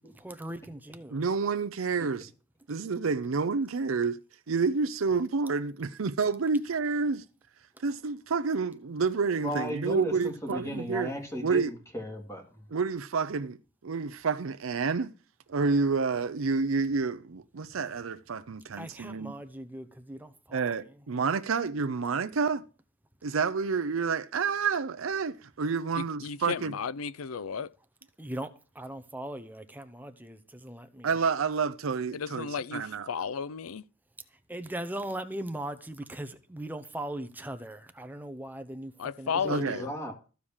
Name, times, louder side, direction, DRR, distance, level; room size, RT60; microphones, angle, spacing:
voice 1, 0.1-1.2 18.8-20.7 28.2-28.5 28.7-31.1 34.5-38.9 39.2-39.5, right 1 dB, 10° right, 0.8 m, -39 dB
voice 2, 1.1-2.3 2.7-4.2 4.5-7.2 7.8-11.1 11.4-11.7 12.7-13.6 13.8-15.1 15.5-19.3 20.5-22.6 23.2-26.7 31.0-33.1 39.5-39.8, right 4 dB, 70° right, 0.6 m, -29 dB
voice 3, 9.4-12.7 39.3-40.1, equal, 15° left, 2.1 m, -36 dB
voice 4, 26.0-27.7 32.1-33.8 39.0-39.9, left 6 dB, 85° left, 0.5 m, -34 dB
14.0 x 4.9 x 7.2 m
head